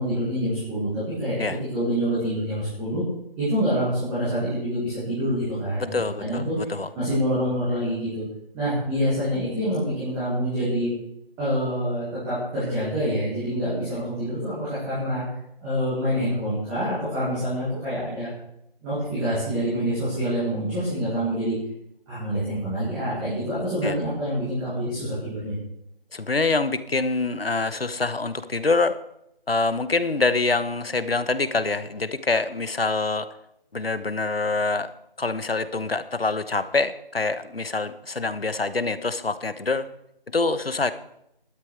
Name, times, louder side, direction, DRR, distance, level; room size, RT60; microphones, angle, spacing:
voice 1, 0.0-1.4 1.7-3.0 3.4-6.5 6.9-8.2 8.5-10.9 11.4-15.2 15.6-18.3 18.8-21.5 22.1-25.5, equal, 5° right, -12 dB, 1.8 m, -26 dB
voice 2, 5.8-6.9 23.8-23.9 26.1-29.0 29.5-33.3 33.7-34.9 35.2-39.9 40.3-40.9, left 3 dB, 80° left, 13 dB, 1.2 m, -25 dB
13.0 x 12.5 x 4.7 m, 0.77 s
figure-of-eight pair, 170°, 29 cm